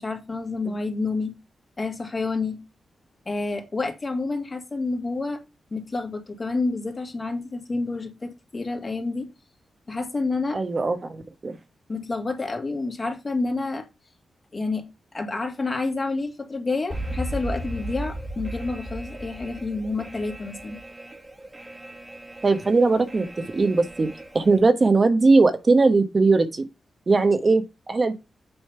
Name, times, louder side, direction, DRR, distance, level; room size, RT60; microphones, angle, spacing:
voice 1, 0.0-1.4 1.8-2.6 3.3-5.4 5.7-9.3 9.9-10.6 11.9-13.8 14.5-14.9 15.1-20.8, left 3 dB, 35° left, 2.1 m, -29 dB
voice 2, 10.5-11.6 22.4-24.1 24.3-26.6 27.1-28.1, right 3 dB, 40° right, 1.1 m, -20 dB
Alarm, 16.9-24.6, right 1 dB, 20° right, 1.7 m, -36 dB
8.0 x 3.2 x 5.6 m
cardioid pair, 55°, 0 cm